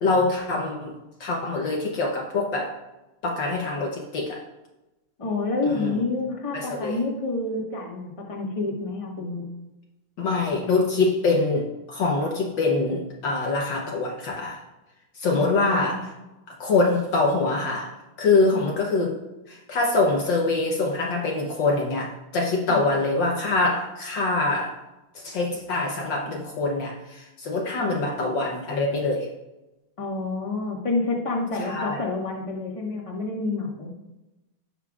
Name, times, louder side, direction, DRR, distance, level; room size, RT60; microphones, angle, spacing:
voice 1, 0.0-0.9 1.2-2.8 3.2-4.4 5.7-5.9 6.5-7.0 10.2-14.6 15.1-16.1 16.5-19.2 19.5-24.8 25.1-29.3 31.6-32.0, left 3 dB, 60° left, 0 dB, 1.5 m, -24 dB
voice 2, 5.2-9.4 15.4-16.0 18.5-18.6 22.7-22.8 30.0-33.9, left 3 dB, 15° left, -1 dB, 1.4 m, -28 dB
17.0 x 5.7 x 2.4 m, 1.0 s
omnidirectional pair, 2.4 m